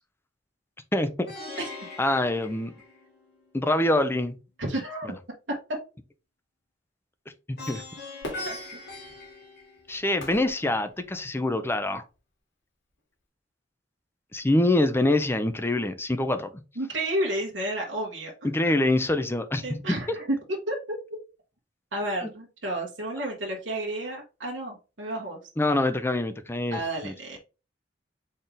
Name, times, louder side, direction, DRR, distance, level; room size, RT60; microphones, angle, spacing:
voice 1, 0.9-1.3 2.0-2.7 3.5-4.4 5.0-5.1 7.7-7.8 9.9-12.0 14.3-16.5 18.4-19.6 25.6-27.1, left 1 dB, 15° left, 0.6 m, -25 dB
Plucked string instrument, 1.3-3.4 7.6-10.2, left 2 dB, 55° left, 2.0 m, -41 dB
voice 2, 4.6-5.2 8.4-8.6 16.8-18.5 19.6-20.3 20.7-21.0 21.9-25.4 26.7-27.4, right 1 dB, 75° right, 1.3 m, -31 dB
Fireworks, 8.2-11.5 12.1-12.2, left 1 dB, 75° left, 2.1 m, -43 dB
4.3 x 3.8 x 3.3 m
head